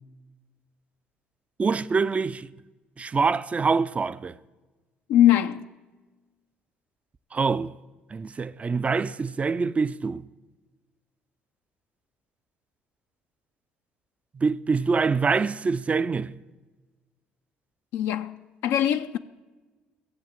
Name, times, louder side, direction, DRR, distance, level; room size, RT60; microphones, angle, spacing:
voice 1, 1.6-2.5 3.0-4.4 7.3-7.7 8.1-10.2 14.3-16.3, right 4 dB, 30° right, 0.4 m, -25 dB
voice 2, 5.1-5.6 17.9-18.4 18.6-19.2, left 11 dB, 70° left, 0.4 m, -21 dB
16.0 x 7.4 x 7.4 m
hypercardioid pair, 60°, 4 cm